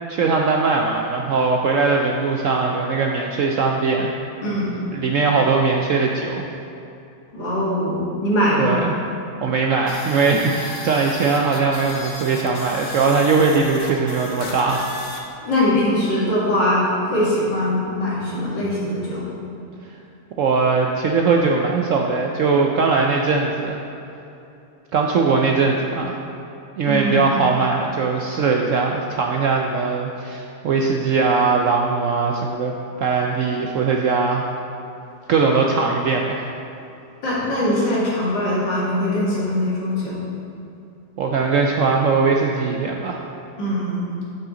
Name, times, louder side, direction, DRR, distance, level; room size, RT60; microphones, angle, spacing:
voice 1, 0.1-4.1 4.9-6.5 8.6-8.9 9.4-15.2 19.9-20.0 20.4-23.8 24.9-26.2 26.8-34.5 35.3-36.5 41.2-43.3, right 4 dB, 70° right, 1 dB, 0.7 m, -20 dB
voice 2, 7.3-8.8 15.4-19.3 26.9-27.3 37.2-40.2 43.6-44.1, left 1 dB, 90° left, -7 dB, 2.9 m, -22 dB
sound 1, 9.9-15.2, left 2 dB, 45° left, 0.8 m, -35 dB
9.1 x 7.8 x 3.8 m, 2.8 s
omnidirectional pair, 1.9 m